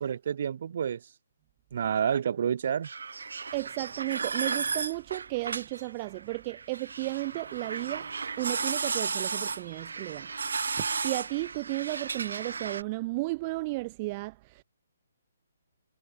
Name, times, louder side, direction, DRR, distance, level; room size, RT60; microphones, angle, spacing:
voice 1, 0.0-1.0 1.7-2.9, right 8 dB, 40° right, 1.5 m, -29 dB
sound 1, 2.8-12.8, right 5 dB, 80° right, 0.7 m, -34 dB
voice 2, 3.5-8.1 8.4-10.3 10.8-14.6, right 22 dB, 20° right, 0.6 m, -34 dB
hypercardioid pair, 175°, 0 cm